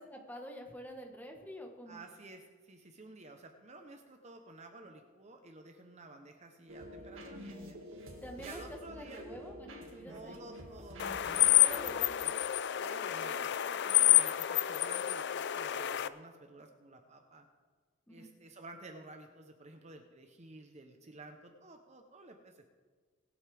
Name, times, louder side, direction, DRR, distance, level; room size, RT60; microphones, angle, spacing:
voice 1, 0.0-2.0 8.2-10.5 11.6-12.3 13.2-13.5 18.1-18.3, equal, 10° left, 2 dB, 1.4 m, -48 dB
voice 2, 1.9-7.8 8.4-9.2 10.1-17.5 18.1-22.7, right 2 dB, 35° right, 4 dB, 0.9 m, -52 dB
sound 1, 6.7-11.9, equal, 75° right, 2.1 m, -48 dB
sound 2, 11.0-16.1, left 13 dB, 55° left, 0.4 m, -28 dB
24.0 x 8.1 x 3.5 m, 1.5 s
head